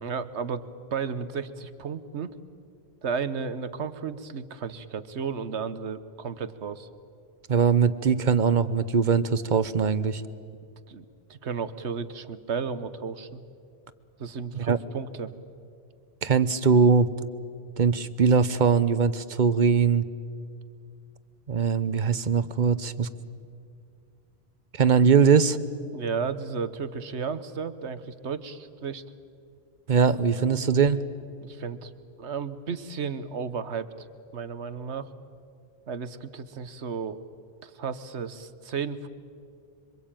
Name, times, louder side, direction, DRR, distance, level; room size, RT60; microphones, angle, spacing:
voice 1, 0.0-2.3 3.0-6.9 10.9-11.0 11.3-13.4 14.2-15.3 25.9-29.0 31.4-31.9 32.2-33.9 34.3-35.1 35.9-37.2 37.6-39.1, right 6 dB, 90° right, 13 dB, 1.4 m, -33 dB
voice 2, 7.5-10.2 14.5-14.8 16.2-17.1 17.8-20.0 21.5-23.1 24.8-25.6 29.9-31.0, right 6 dB, 45° right, 14 dB, 1.0 m, -21 dB
26.5 x 25.0 x 9.0 m, 2.4 s
omnidirectional pair, 1.1 m